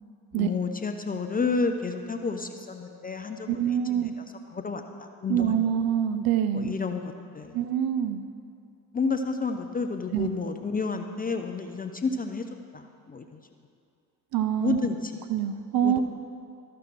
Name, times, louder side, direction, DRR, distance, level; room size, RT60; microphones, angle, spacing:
voice 1, 0.3-4.0 4.5-5.5 6.5-7.6 8.9-12.4 12.7-13.4 14.6-15.0 15.8-16.0, left 4 dB, 20° left, 6 dB, 0.5 m, -30 dB
voice 2, 3.5-4.1 5.3-6.7 7.5-8.2 10.1-10.3 14.3-14.8 15.3-16.0, right 9 dB, 45° right, 10 dB, 0.7 m, -25 dB
13.5 x 6.1 x 4.6 m, 2.4 s
hypercardioid pair, 60°, 50 cm